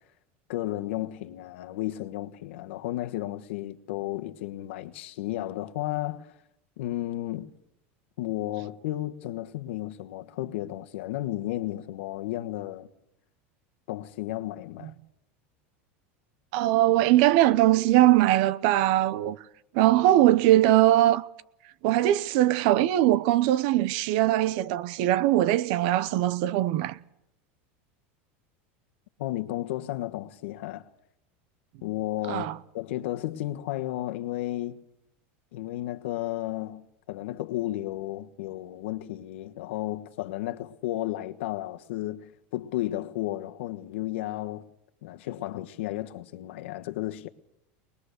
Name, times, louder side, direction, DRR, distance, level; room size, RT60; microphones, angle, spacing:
voice 1, 0.5-6.3 6.8-7.5 8.2-12.9 13.9-14.9 29.2-30.8 31.8-34.8 35.5-44.7 45.0-47.3, left 15 dB, 80° left, 1.3 m, -33 dB
voice 2, 16.5-19.4 19.7-21.3 21.8-27.0 32.3-32.6, right 14 dB, 50° right, 0.7 m, -21 dB
22.5 x 21.0 x 6.7 m
supercardioid pair, 175°, 6 cm